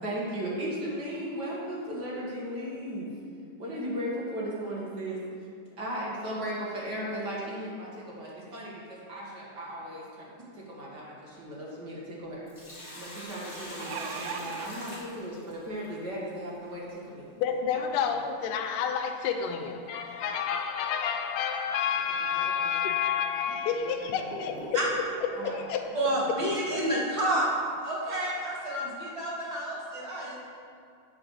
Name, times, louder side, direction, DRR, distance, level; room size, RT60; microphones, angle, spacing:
voice 1, 0.0-3.1 3.6-5.2 5.8-12.5 12.9-17.3 17.7-17.8 22.2-22.9 23.5-24.1 24.4-24.5 25.3-25.6 25.9-26.2, equal, 40° right, -5 dB, 1.6 m, -37 dB
sound 1, 11.4-11.5 11.8-11.9 13.5-14.7 15.6-15.7 16.1-16.2, right 7 dB, 80° right, 1.7 m, -37 dB
Sink (filling or washing), 12.5-15.9 18.3-18.4 20.2-20.4 20.9-21.0 21.8-22.0 22.7-22.8 23.4-25.3, equal, 15° left, 2.2 m, -43 dB
voice 2, 17.4-24.8 25.3-25.9, left 7 dB, 90° left, 5 dB, 2.3 m, -29 dB
voice 3, 25.9-27.5 27.8-30.5, right 1 dB, 25° right, -6 dB, 0.7 m, -29 dB
9.1 x 4.8 x 6.4 m, 2.3 s
omnidirectional pair, 3.7 m